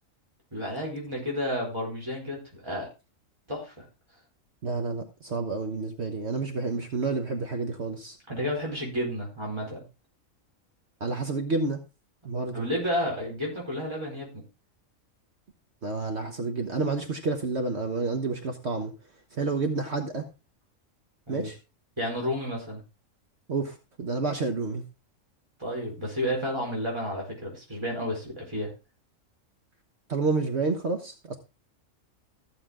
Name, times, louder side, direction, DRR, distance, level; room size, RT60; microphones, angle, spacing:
voice 1, 0.5-2.9 3.5-3.8 8.3-9.8 12.5-14.4 21.3-21.5 22.0-22.8 25.6-28.7, equal, 20° right, -3 dB, 4.7 m, -31 dB
voice 2, 4.6-8.2 11.0-11.8 12.2-12.6 15.8-18.9 19.3-20.3 21.3-21.6 23.5-24.8 30.1-31.3, right 3 dB, 55° right, 5 dB, 1.5 m, -29 dB
14.5 x 7.1 x 3.7 m, 0.29 s
omnidirectional pair, 1.4 m